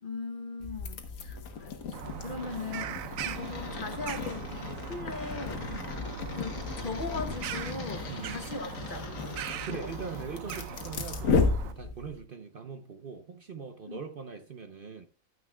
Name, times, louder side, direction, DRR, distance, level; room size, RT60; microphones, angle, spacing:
voice 1, 0.0-5.7 6.3-9.4 9.7-9.9 13.9-14.0, left 4 dB, 45° left, 0.8 m, -39 dB
sound 1, 0.6-12.2, left 4 dB, 70° left, 1.4 m, -34 dB
Bird vocalization bird call bird song, 1.9-11.7, right 9 dB, 75° right, 1.0 m, -40 dB
voice 2, 2.3-2.6 5.7-5.9 8.1-8.4 9.6-15.1, right 5 dB, 50° right, 0.8 m, -42 dB
13.5 x 9.4 x 2.2 m
omnidirectional pair, 1.5 m